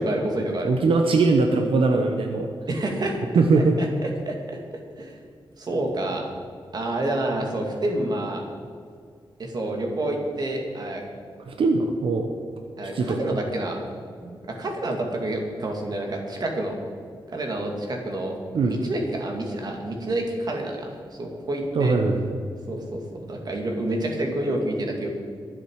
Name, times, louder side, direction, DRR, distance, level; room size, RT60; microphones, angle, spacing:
voice 1, 0.0-0.7 2.7-3.3 3.8-4.6 5.0-5.2 5.6-6.3 6.7-8.4 9.4-11.0 12.8-13.8 14.2-16.8 17.3-18.3 18.6-20.9 21.2-21.9 22.7-25.1, right 1 dB, 50° right, 1 dB, 2.5 m, -28 dB
voice 2, 0.6-2.5 3.3-3.8 11.5-12.3 12.9-13.4 18.5-18.8 21.7-22.4, right 3 dB, 90° right, 4 dB, 1.0 m, -21 dB
23.0 x 7.8 x 4.8 m, 2.1 s
wide cardioid pair, 155°, 9 cm